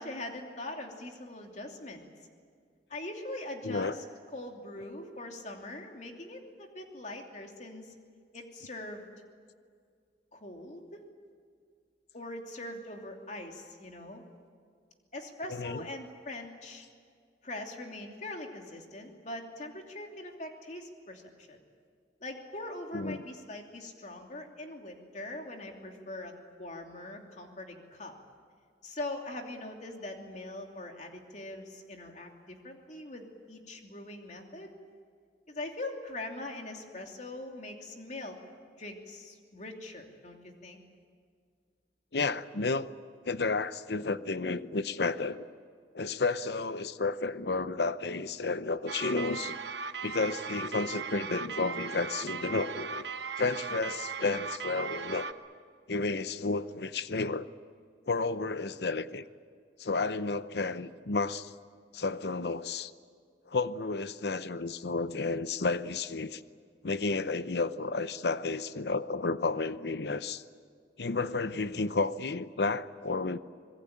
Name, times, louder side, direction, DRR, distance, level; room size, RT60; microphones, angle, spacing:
voice 1, 0.0-2.0 2.9-4.0 4.3-7.9 8.3-9.1 10.3-11.0 12.1-14.2 15.1-16.9 17.4-21.6 22.2-26.3 26.6-28.1 28.8-34.7 35.5-38.4 38.8-40.8, left 1 dB, 45° left, 3.0 m, -42 dB
voice 2, 15.5-15.9 22.9-23.2 42.1-42.9 43.2-45.4 45.9-49.6 50.0-53.0 53.4-55.3 55.9-57.5 58.1-59.2 59.8-61.5 61.9-62.9 63.5-66.4 66.8-70.4 71.0-73.4, left 3 dB, 70° left, 0.8 m, -31 dB
sound 1, 48.9-55.3, right 5 dB, 80° right, 1.1 m, -38 dB
26.0 x 21.0 x 8.9 m
head